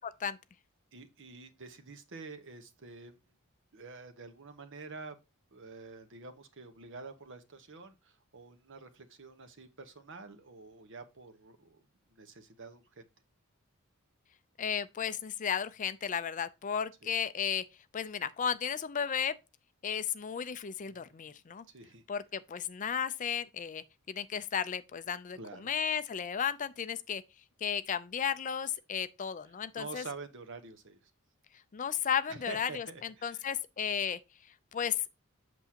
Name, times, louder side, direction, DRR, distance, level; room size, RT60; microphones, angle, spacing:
voice 1, 0.9-3.1 3.7-5.2 5.5-11.8 12.1-13.1 17.0-17.1 20.8-21.2 21.7-22.0 25.3-25.7 29.8-31.1 32.3-33.4, right 4 dB, 55° right, 1.1 m, -48 dB
voice 2, 14.6-17.6 17.9-19.4 19.8-21.6 22.1-27.2 27.6-30.0 31.7-34.2 34.7-35.0, left 8 dB, 35° left, 0.4 m, -34 dB
8.1 x 6.2 x 2.8 m
head